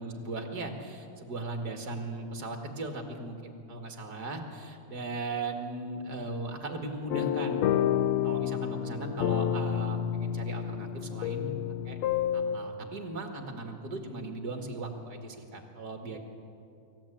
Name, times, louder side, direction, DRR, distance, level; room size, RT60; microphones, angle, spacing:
voice 1, 0.0-7.7 8.2-11.5 11.8-12.0 12.3-16.2, right 2 dB, 35° right, 3 dB, 2.0 m, -38 dB
sound 1, 7.1-12.6, left 10 dB, 75° left, 1.5 m, -29 dB
26.0 x 15.5 x 8.8 m, 2.6 s
omnidirectional pair, 3.8 m